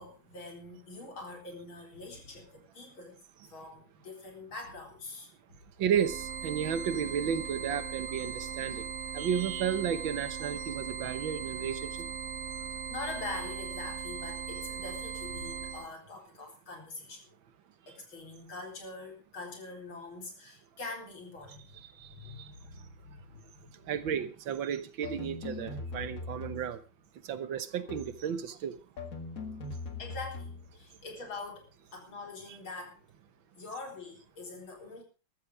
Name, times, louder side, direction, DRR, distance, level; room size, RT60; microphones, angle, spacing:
voice 1, 0.0-5.6 12.9-17.3 17.9-21.7 22.0-23.4 23.7-23.8 30.0-33.0 33.5-35.0, left 3 dB, 85° left, 4.9 m, -44 dB
voice 2, 5.8-8.8 9.1-11.9 23.9-26.8 27.3-28.7, right 8 dB, 75° right, 1.8 m, -32 dB
sound 1, 5.9-15.9, right 6 dB, 45° right, 1.8 m, -39 dB
sound 2, 25.0-26.8 27.9-28.3 29.0-30.8, left 3 dB, 45° left, 2.3 m, -41 dB
14.5 x 13.0 x 4.8 m
omnidirectional pair, 2.2 m